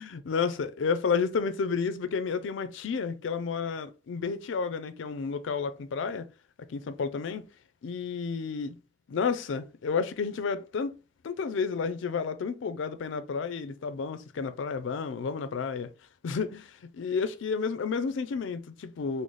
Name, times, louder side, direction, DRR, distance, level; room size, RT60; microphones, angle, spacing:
voice 1, 0.0-6.3 6.7-7.4 7.8-8.8 9.1-11.0 11.2-15.9 16.2-19.2, left 5 dB, 70° left, 0.4 m, -31 dB
3.9 x 2.0 x 3.1 m
head